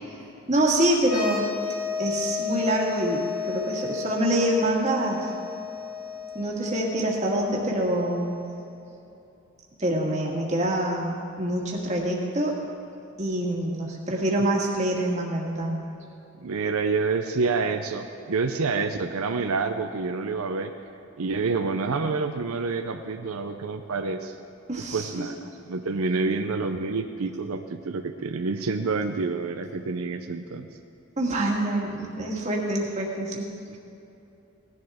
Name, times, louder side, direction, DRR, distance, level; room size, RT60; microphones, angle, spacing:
voice 1, 0.5-1.4 2.0-5.3 6.4-8.4 9.8-12.5 13.2-15.8 24.7-25.2 31.2-33.5, right 1 dB, 30° right, -2 dB, 1.8 m, -26 dB
sound 1, 1.0-8.5, left 6 dB, 75° left, 2.1 m, -33 dB
voice 2, 16.4-20.7 21.2-24.3 24.9-30.7 33.7-33.8, right 4 dB, 90° right, 6 dB, 0.6 m, -28 dB
18.0 x 11.0 x 3.6 m, 2.8 s
head